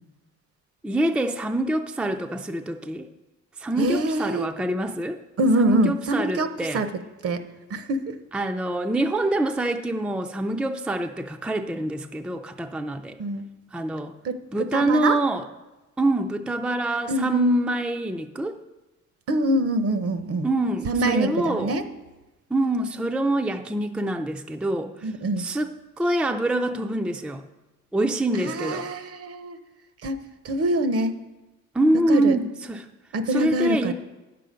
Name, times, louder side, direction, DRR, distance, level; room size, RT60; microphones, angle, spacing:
voice 1, 0.8-3.1 3.6-5.2 5.6-6.8 8.3-13.2 13.7-14.1 14.5-15.4 16.0-18.6 20.4-21.7 22.5-25.1 25.4-27.4 27.9-28.9 31.7-32.9 33.3-33.9, right 1 dB, 5° right, 6 dB, 0.4 m, -25 dB
voice 2, 3.8-4.5 5.4-6.9 7.2-7.4 7.7-8.2 13.2-13.4 14.2-15.2 17.1-17.5 19.3-20.5 20.9-21.8 25.0-25.5 28.3-29.6 30.0-30.2 30.4-31.2 32.1-32.4 33.1-33.9, right 1 dB, 50° right, 10 dB, 0.8 m, -25 dB
9.1 x 6.8 x 5.1 m, 1.1 s
cardioid pair, 90°, 30 cm